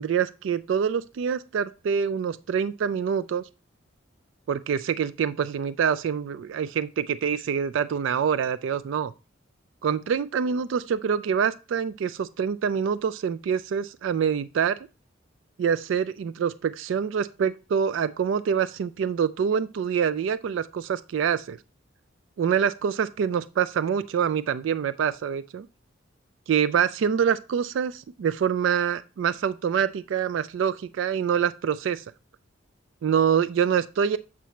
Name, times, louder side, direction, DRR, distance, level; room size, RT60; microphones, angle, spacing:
voice 1, 0.0-3.4 4.5-9.1 9.8-14.8 15.6-21.6 22.4-25.7 26.5-32.0 33.0-34.2, right 7 dB, 70° right, 0.3 m, -25 dB
7.4 x 3.0 x 5.7 m
head